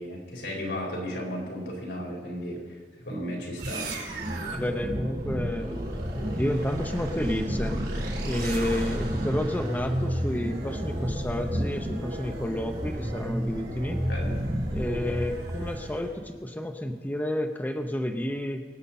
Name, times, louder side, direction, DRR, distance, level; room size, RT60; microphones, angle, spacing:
voice 1, 0.0-3.9 14.1-14.6, equal, 90° left, -3 dB, 4.5 m, -35 dB
sound 1, 3.6-16.2, equal, 75° right, 5.2 m, -31 dB
voice 2, 4.5-7.8 8.2-14.0 14.7-18.6, left 1 dB, 10° left, 4 dB, 0.8 m, -31 dB
24.0 x 8.9 x 4.3 m, 1.5 s
head